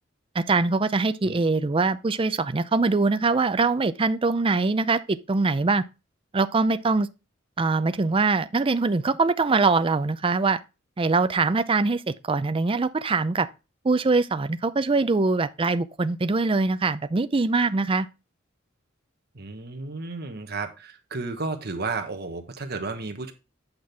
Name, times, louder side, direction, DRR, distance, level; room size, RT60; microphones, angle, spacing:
voice 1, 0.3-5.8 6.3-7.1 7.6-10.6 11.0-13.5 13.8-18.1, right 3 dB, 25° right, 0.5 m, -23 dB
voice 2, 19.3-23.3, right 3 dB, 55° right, 1.4 m, -33 dB
8.8 x 5.9 x 3.4 m
head